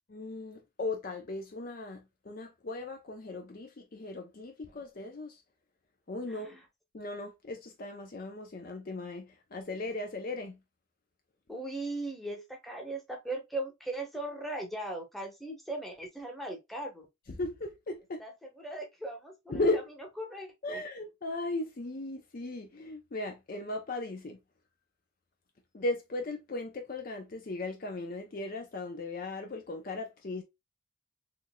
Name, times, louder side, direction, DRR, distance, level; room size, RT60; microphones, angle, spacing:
voice 1, 0.1-5.4 6.1-6.6 6.9-10.6 17.3-18.2 19.5-19.9 20.6-24.4 25.7-30.4, left 2 dB, 40° left, 0.5 m, -37 dB
voice 2, 6.3-6.6 11.5-17.1 18.2-18.3 18.6-19.6 20.2-20.8, right 2 dB, ahead, 0.9 m, -38 dB
3.8 x 3.2 x 2.2 m
head